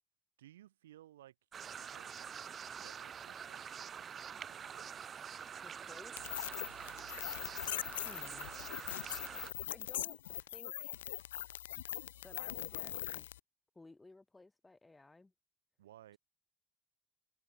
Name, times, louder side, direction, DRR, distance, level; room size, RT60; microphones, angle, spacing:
voice 1, 0.4-1.3 1.8-2.3 2.8-4.1 4.5-4.9 7.3-7.4 15.8-16.2, right 13 dB, 85° right, 2.3 m, -59 dB
sound 1, 1.5-9.5, right 7 dB, 50° right, 0.6 m, -46 dB
voice 2, 5.6-7.0 8.0-8.5 9.7-11.1 12.2-13.3 13.7-15.3, left 2 dB, 20° left, 3.3 m, -58 dB
sound 2, 6.2-13.4, left 13 dB, 85° left, 0.4 m, -42 dB
hypercardioid pair, 50°, 0 cm